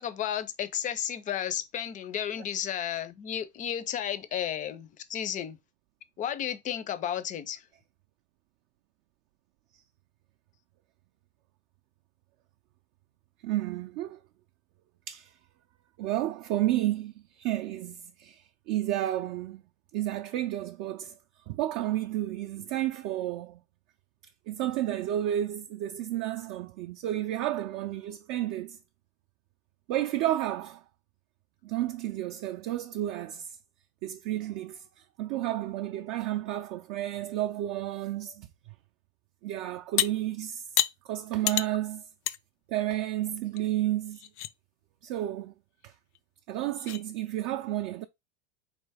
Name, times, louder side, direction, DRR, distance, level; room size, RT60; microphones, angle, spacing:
voice 1, 0.0-5.6 6.2-7.6, left 9 dB, 25° left, 0.4 m, -33 dB
voice 2, 13.4-14.2 15.1-15.3 16.0-19.6 19.9-21.1 21.5-23.6 24.5-28.8 29.9-30.8 31.6-33.5 34.0-34.8 35.2-38.5 39.4-40.6 41.0-42.0 42.7-44.2 45.0-45.5 45.8-45.9 46.5-48.1, right 13 dB, 50° right, 0.5 m, -31 dB
sound 1, 40.0-40.1 40.8-40.9 41.5-41.7 42.3-42.4 42.8-42.9 43.6-43.7 44.1-44.5 46.1-46.2 46.8-47.0, left 13 dB, 90° left, 0.5 m, -28 dB
3.9 x 3.2 x 3.4 m
supercardioid pair, 130°, 33 cm